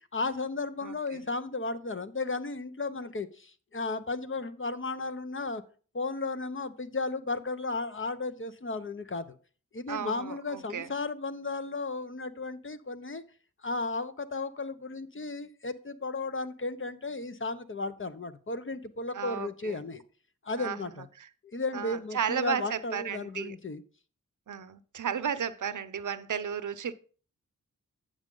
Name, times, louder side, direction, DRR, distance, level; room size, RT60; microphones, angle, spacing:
voice 1, 0.1-5.6 5.9-9.4 9.7-13.2 13.6-20.0 20.4-21.1 21.4-23.8, left 3 dB, 40° left, 0.8 m, -34 dB
voice 2, 0.8-1.2 9.9-10.9 19.1-19.8 20.6-20.9 21.2-21.3 21.7-23.5 24.5-26.9, right 7 dB, 65° right, 0.7 m, -34 dB
8.8 x 6.3 x 3.8 m
cardioid pair, 45°, 33 cm